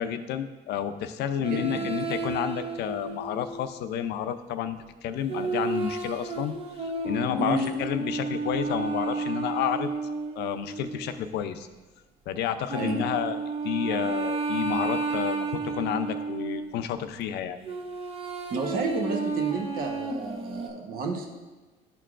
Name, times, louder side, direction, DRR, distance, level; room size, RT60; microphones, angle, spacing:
voice 1, 0.0-6.5 6.8-9.9 10.4-11.7 12.3-13.4 13.6-17.6, left 9 dB, 80° left, 10 dB, 0.5 m, -30 dB
sound 1, 1.4-3.7 5.3-11.3 12.7-16.7 17.6-20.7, right 4 dB, 35° right, 0.8 m, -32 dB
voice 2, 1.4-2.1 7.4-7.7 12.7-13.0 18.5-21.3, right 3 dB, 60° right, 3 dB, 1.0 m, -31 dB
12.0 x 4.5 x 2.5 m, 1.2 s
cardioid pair, 110°, 17 cm